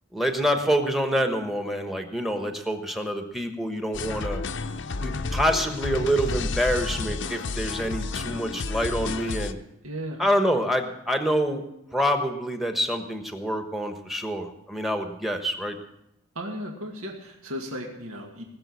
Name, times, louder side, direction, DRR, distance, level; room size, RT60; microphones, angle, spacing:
voice 1, 0.1-4.4 5.0-9.6 10.2-11.6 11.9-15.8, equal, ahead, 6 dB, 1.2 m, -26 dB
sound 1, 3.9-9.5, left 3 dB, 55° left, 0.7 m, -31 dB
voice 2, 9.8-10.2 16.4-18.4, equal, 75° right, 2 dB, 2.2 m, -35 dB
19.5 x 7.0 x 8.3 m, 0.83 s
head